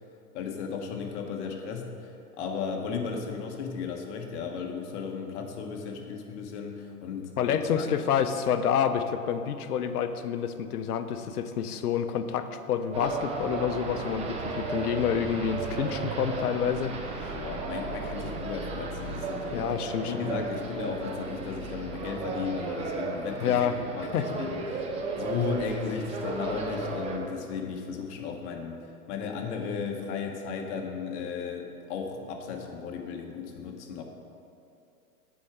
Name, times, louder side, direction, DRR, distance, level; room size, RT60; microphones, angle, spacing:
voice 1, 0.3-7.9 17.3-19.7 20.0-24.8 25.1-34.0, left 5 dB, 50° left, 2 dB, 1.3 m, -35 dB
voice 2, 7.4-17.4 19.5-20.1 23.4-23.8 24.1-24.3, left 8 dB, 80° left, 10 dB, 0.7 m, -28 dB
sound 1, 12.9-27.2, right 3 dB, 15° right, 0.5 m, -34 dB
8.3 x 4.8 x 6.0 m, 2.6 s
hypercardioid pair, 125°, 45 cm